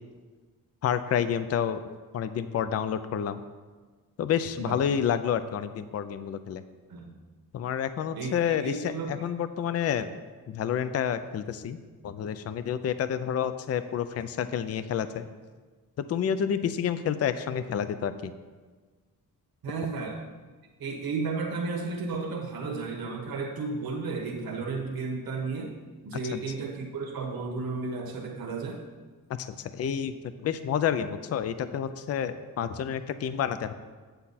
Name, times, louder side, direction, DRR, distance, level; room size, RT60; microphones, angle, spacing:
voice 1, 0.8-1.8 2.1-3.4 4.2-6.6 7.5-10.1 10.5-11.8 12.0-15.3 16.0-18.3 26.3-26.4 29.4-33.7, left 8 dB, 45° left, 12 dB, 0.4 m, -29 dB
voice 2, 8.1-9.2 19.6-20.2 20.8-25.7 26.0-28.8, right 4 dB, 70° right, -1 dB, 1.2 m, -33 dB
8.5 x 8.0 x 4.1 m, 1.4 s
wide cardioid pair, 175°, 36 cm